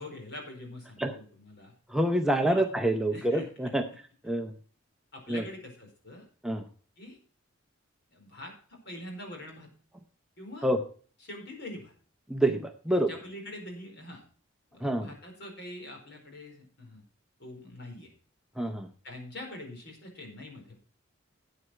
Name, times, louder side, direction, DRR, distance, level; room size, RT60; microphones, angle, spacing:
voice 1, 0.0-1.7 2.5-2.6 3.1-3.7 5.1-6.2 7.0-7.2 8.1-9.7 10.4-10.7 11.2-11.9 12.9-14.2 14.7-17.0 17.4-18.1 19.0-20.7, left 1 dB, 55° left, 2 dB, 4.6 m, -44 dB
voice 2, 1.9-3.9 4.2-4.5 5.3-5.4 6.4-6.6 10.6-10.8 12.3-13.1 14.8-15.1 18.6-18.9, right 1 dB, 5° right, 4 dB, 0.6 m, -27 dB
12.5 x 8.6 x 4.4 m, 0.42 s
head